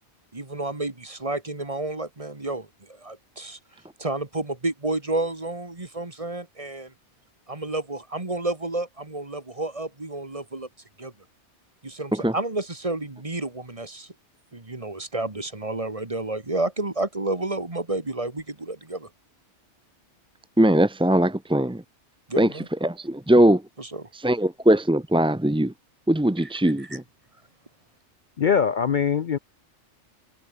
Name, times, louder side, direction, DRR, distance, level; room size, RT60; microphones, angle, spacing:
voice 1, 0.3-3.6 4.0-6.9 7.5-10.7 11.0-11.1 11.8-14.1 14.5-19.1 22.3-22.7 23.8-24.0, right 2 dB, 30° right, 2.1 m, -30 dB
voice 2, 20.6-21.8 22.4-23.6 24.1-25.7 26.1-27.0, right 1 dB, 5° right, 0.5 m, -20 dB
voice 3, 28.4-29.4, left 7 dB, 50° left, 0.7 m, -22 dB
omnidirectional pair, 1.2 m